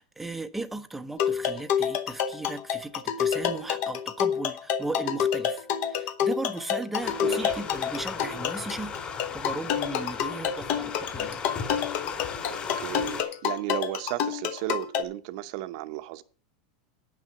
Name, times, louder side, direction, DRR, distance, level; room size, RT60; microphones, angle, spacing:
voice 1, 0.0-11.4, right 2 dB, 5° right, 0.7 m, -37 dB
sound 1, 1.2-15.0, left 8 dB, 50° left, 1.0 m, -28 dB
sound 2, 7.0-13.2, left 6 dB, 30° left, 2.7 m, -37 dB
voice 2, 7.2-7.5 12.5-16.2, right 15 dB, 60° right, 0.8 m, -34 dB
8.9 x 6.0 x 7.7 m
supercardioid pair, 140°, 4 cm